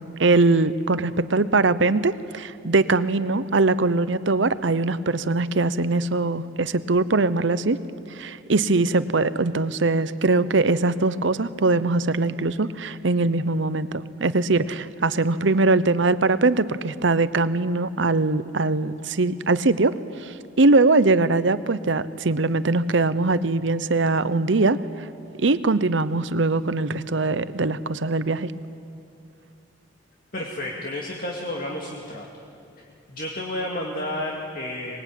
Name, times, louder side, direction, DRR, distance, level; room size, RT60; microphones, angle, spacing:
voice 1, 0.0-7.8 8.1-24.8 25.4-28.5, right 3 dB, 65° right, 14 dB, 0.8 m, -22 dB
voice 2, 30.3-32.3 33.1-35.0, left 1 dB, 45° left, -1 dB, 2.3 m, -31 dB
24.0 x 21.0 x 9.2 m, 2.5 s
head